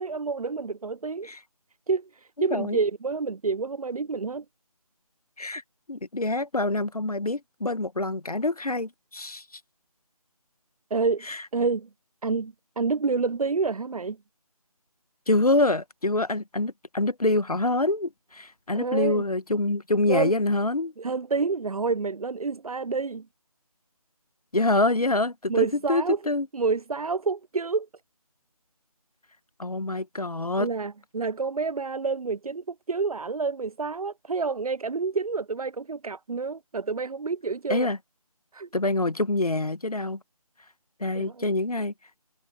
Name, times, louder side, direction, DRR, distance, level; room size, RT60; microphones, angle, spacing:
voice 1, 0.0-1.3 1.9-2.1 2.4-4.4 10.9-11.3 11.5-11.9 12.2-14.2 18.7-19.2 20.1-20.3 21.0-23.3 25.5-26.2 26.5-27.9 30.6-37.9 38.5-38.7 41.1-41.4, right 4 dB, 70° right, 0.5 m, -28 dB
voice 2, 2.4-2.8 5.4-5.6 5.9-9.4 11.3-11.4 15.3-20.9 24.5-26.5 29.6-30.7 37.7-38.0 38.7-40.2 41.0-41.9, left 2 dB, 75° left, 1.4 m, -26 dB
figure-of-eight pair, 160°, 19 cm